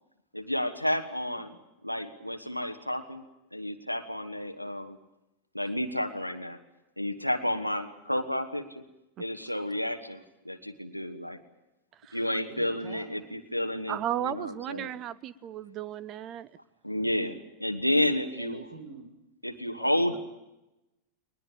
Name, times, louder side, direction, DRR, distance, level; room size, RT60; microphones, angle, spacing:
voice 1, 0.3-1.6 1.8-3.2 3.5-5.0 5.5-6.6 7.0-8.8 9.2-11.4 12.1-14.9 16.8-18.6 19.4-20.2, left 1 dB, 90° left, 6 dB, 1.4 m, -31 dB
voice 2, 12.5-13.1 14.7-14.9 18.4-19.0 19.8-20.2, right 3 dB, 50° right, 7 dB, 5.8 m, -45 dB
voice 3, 13.9-16.5, right 11 dB, 35° right, 19 dB, 0.8 m, -34 dB
21.0 x 21.0 x 9.0 m, 0.94 s
figure-of-eight pair, 90°, 0 cm